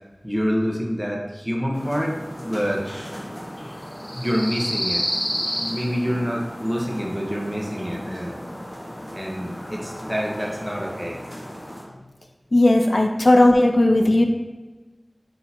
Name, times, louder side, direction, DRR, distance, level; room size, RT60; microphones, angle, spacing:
voice 1, 0.2-2.9 4.2-5.0 5.6-8.4 9.1-11.2 13.1-13.3, equal, 10° right, -1 dB, 0.8 m, -27 dB
sound 1, 1.7-11.8, equal, 25° left, 0.8 m, -32 dB
voice 2, 12.5-14.2, left 1 dB, 65° left, 4 dB, 0.3 m, -16 dB
6.1 x 2.8 x 2.7 m, 1.2 s
wide cardioid pair, 50°, 0 cm